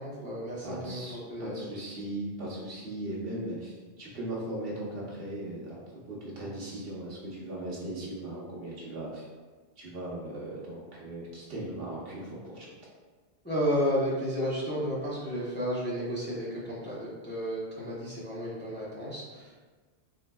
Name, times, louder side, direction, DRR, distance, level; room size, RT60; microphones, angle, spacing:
voice 1, 0.0-1.7 13.4-19.6, equal, 10° left, -8 dB, 0.8 m, -32 dB
voice 2, 0.6-5.8 6.1-9.2 9.8-12.7, right 1 dB, 60° right, -5 dB, 1.1 m, -38 dB
4.2 x 3.7 x 2.2 m, 1.4 s
omnidirectional pair, 1.1 m